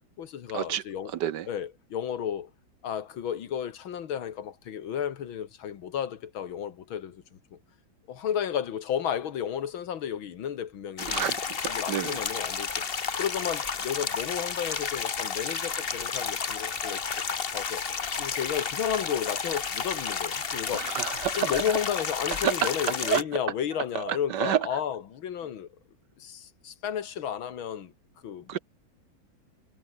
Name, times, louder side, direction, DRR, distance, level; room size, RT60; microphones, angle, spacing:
voice 1, 0.2-1.1 1.5-2.5 2.8-7.2 7.5-7.6 8.1-12.8 13.1-17.0 17.3-17.8 18.2-20.9 21.4-25.7 26.2-27.9 28.2-28.6, left 9 dB, 85° left, 2.3 m, -32 dB
sound 1, 11.0-23.2, left 6 dB, 35° left, 1.2 m, -32 dB
voice 2, 11.1-12.2 20.7-21.5 22.4-22.5 23.0-23.2 24.1-24.6 28.5-28.6, right 10 dB, 65° right, 1.3 m, -29 dB
omnidirectional pair, 2.1 m